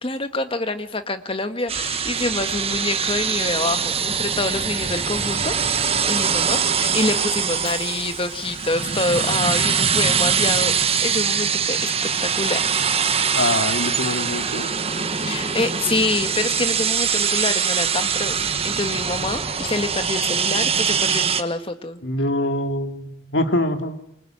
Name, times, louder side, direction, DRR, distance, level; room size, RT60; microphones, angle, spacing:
voice 1, 0.0-11.9 12.2-12.7 15.2-22.0, left 2 dB, 30° left, 8 dB, 1.9 m, -26 dB
sound 1, 1.7-21.4, right 6 dB, 35° right, 1.3 m, -23 dB
Hiss / Sliding door, 7.0-17.8, left 5 dB, 50° left, 5.0 m, -48 dB
voice 2, 13.3-14.7 22.0-24.0, left 1 dB, 75° left, 6 dB, 2.9 m, -24 dB
26.5 x 24.0 x 9.2 m, 0.81 s
head